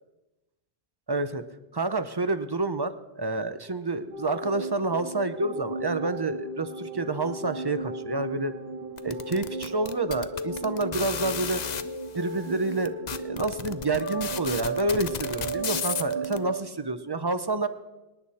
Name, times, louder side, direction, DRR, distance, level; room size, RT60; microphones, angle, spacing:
voice 1, 1.1-1.4 1.7-8.5 9.0-11.6 12.1-17.7, right 2 dB, 25° right, 11 dB, 0.6 m, -28 dB
sound 1, 4.1-16.6, right 3 dB, 65° right, 2.3 m, -35 dB
sound 2, 9.0-11.8 12.5-12.6 12.8-16.4, left 7 dB, 50° left, 0.7 m, -33 dB
25.0 x 10.0 x 4.2 m, 1.0 s
omnidirectional pair, 1.1 m